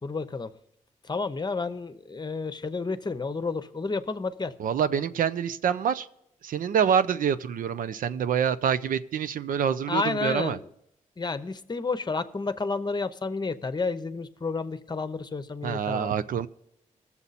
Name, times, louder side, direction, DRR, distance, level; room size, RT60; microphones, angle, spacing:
voice 1, 0.0-0.5 1.0-4.5 9.9-10.7 11.2-16.1, left 4 dB, 30° left, 12 dB, 0.8 m, -31 dB
voice 2, 4.6-6.1 6.4-10.6 15.6-16.5, right 8 dB, 80° right, 12 dB, 0.5 m, -26 dB
19.5 x 7.1 x 4.1 m, 0.78 s
cardioid pair, 65°, 14 cm